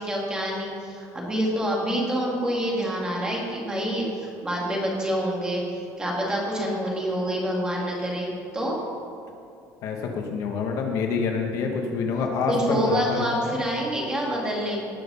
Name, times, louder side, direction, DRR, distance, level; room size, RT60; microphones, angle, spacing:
voice 1, 0.0-8.8 12.5-14.8, equal, 10° right, -2 dB, 2.1 m, -27 dB
voice 2, 9.8-13.5, left 4 dB, 50° left, 2 dB, 1.4 m, -27 dB
18.5 x 6.7 x 5.5 m, 2.5 s
cardioid pair, 170°, 7 cm